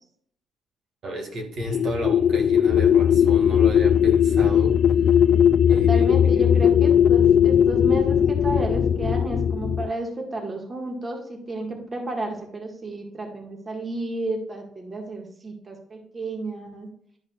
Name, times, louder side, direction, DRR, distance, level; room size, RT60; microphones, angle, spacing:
voice 1, 1.0-4.8 5.7-6.5, right 1 dB, 65° right, 2 dB, 2.0 m, -33 dB
sound 1, 1.6-9.9, left 9 dB, 60° left, 0.3 m, -18 dB
voice 2, 5.7-16.9, right 2 dB, 30° right, 1 dB, 1.7 m, -32 dB
11.0 x 5.2 x 2.4 m, 0.63 s
cardioid pair, 90°, 0 cm